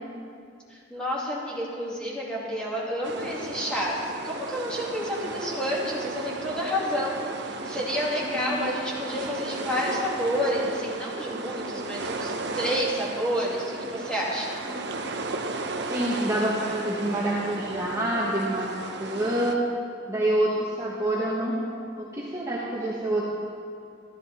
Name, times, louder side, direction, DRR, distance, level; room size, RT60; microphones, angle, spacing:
voice 1, 0.7-14.5, equal, 5° left, -6 dB, 2.5 m, -29 dB
sound 1, 3.0-19.6, right 3 dB, 60° right, 0.8 m, -35 dB
voice 2, 8.2-8.7 14.7-14.8 15.9-18.7 19.0-19.6 20.1-21.6 22.0-23.2, right 1 dB, 15° right, -6 dB, 1.4 m, -27 dB
13.5 x 13.5 x 4.3 m, 2.4 s
head